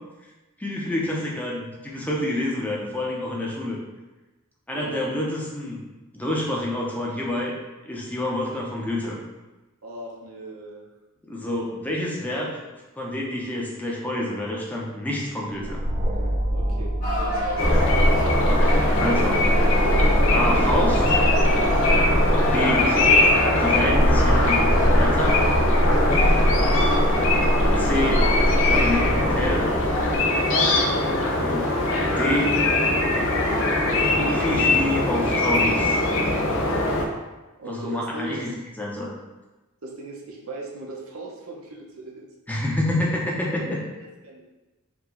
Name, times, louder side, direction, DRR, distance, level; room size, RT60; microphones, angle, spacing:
voice 1, 0.6-3.8 4.7-5.8 6.1-7.5 7.8-9.2 11.3-12.6 13.0-15.8 18.5-19.4 20.3-21.2 22.3-25.4 27.8-29.7 31.4-31.6 32.1-32.6 34.2-36.0 37.7-38.5 38.8-39.1 42.5-43.8, left 1 dB, 5° left, -3 dB, 0.7 m, -28 dB
voice 2, 9.8-10.8 16.5-18.0 37.6-38.5 39.8-42.3 44.0-44.4, right 2 dB, 70° right, -1 dB, 0.8 m, -38 dB
sound 1, 15.6-30.2, equal, 30° right, 0.5 m, -23 dB
sound 2, 17.0-33.6, equal, 40° left, 1.0 m, -32 dB
sound 3, 17.6-37.1, left 2 dB, 60° left, 0.6 m, -22 dB
4.6 x 2.3 x 3.9 m, 1.1 s
head